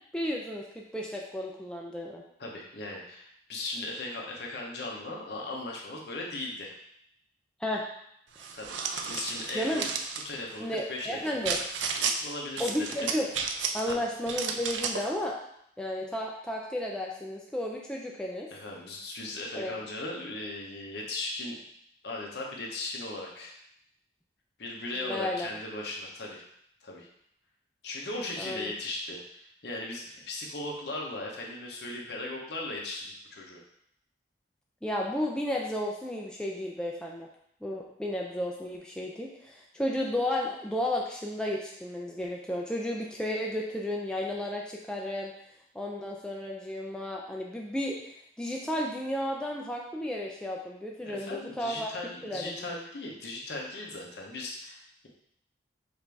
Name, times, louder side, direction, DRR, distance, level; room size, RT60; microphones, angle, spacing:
voice 1, 0.1-2.2 7.6-7.8 8.4-8.5 9.1-9.2 9.5-9.9 10.6-11.6 12.6-13.3 13.7-15.4 15.8-18.5 19.5-19.8 25.0-25.5 28.4-28.7 34.8-37.3 37.6-45.3 45.7-48.0 48.4-51.9 52.2-52.7, left 1 dB, 5° left, -2 dB, 0.3 m, -33 dB
voice 2, 2.4-6.7 8.5-8.8 9.1-9.9 10.2-11.6 12.0-13.1 13.8-14.0 18.5-21.6 22.0-23.5 24.6-26.4 26.8-27.1 27.8-33.6 51.0-55.1, left 2 dB, 60° left, -1 dB, 0.8 m, -38 dB
sound 1, 8.4-10.3 11.4-12.2 12.6-13.9 14.3-15.1, right 6 dB, 80° right, 0.4 m, -32 dB
5.0 x 2.5 x 3.4 m, 0.72 s
head